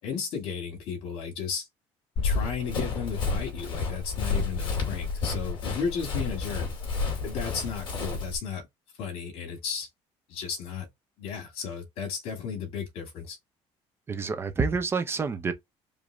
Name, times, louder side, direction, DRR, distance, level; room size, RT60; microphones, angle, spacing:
voice 1, 0.0-1.7 2.2-6.7 7.2-8.6 9.0-9.9 10.3-10.9 11.2-13.4, left 6 dB, 65° left, 2.6 m, -34 dB
Run, 2.2-8.4, left 4 dB, 45° left, 2.8 m, -30 dB
voice 2, 14.1-15.5, right 4 dB, 20° right, 0.7 m, -28 dB
5.1 x 2.7 x 3.6 m
cardioid pair, 155°, 11 cm